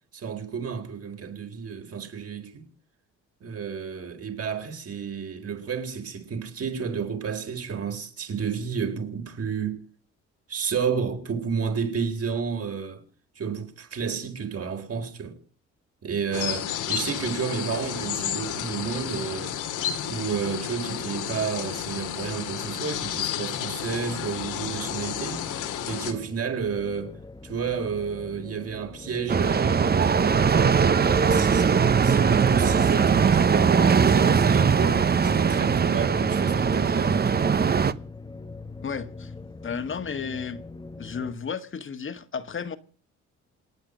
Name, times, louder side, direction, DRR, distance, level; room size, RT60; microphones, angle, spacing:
voice 1, 0.1-2.7 3.4-9.8 10.5-13.0 13.4-15.4 16.0-19.6 20.1-25.5 25.9-37.5, right 6 dB, 50° right, 4.2 m, -31 dB
sound 1, 16.3-26.1, left 10 dB, 90° left, 2.3 m, -31 dB
sound 2, 23.3-41.4, left 3 dB, 15° left, 1.2 m, -43 dB
sound 3, 29.3-37.9, right 6 dB, 30° right, 0.9 m, -20 dB
voice 2, 38.8-39.3 39.6-40.6 41.0-42.8, left 6 dB, 40° left, 1.6 m, -33 dB
28.0 x 9.3 x 5.1 m
cardioid pair, 90°, 30 cm